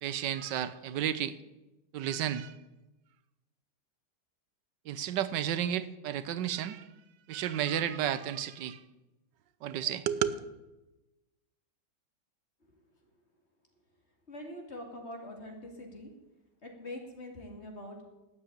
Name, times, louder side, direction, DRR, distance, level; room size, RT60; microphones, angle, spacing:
voice 1, 0.0-1.3 1.9-2.5 4.9-6.9 7.3-8.8 9.6-10.4, right 10 dB, 90° right, 15 dB, 1.4 m, -32 dB
voice 2, 14.3-16.1 16.6-18.0, left 1 dB, 40° left, 2 dB, 2.8 m, -44 dB
12.5 x 8.8 x 8.8 m, 1.0 s
omnidirectional pair, 1.9 m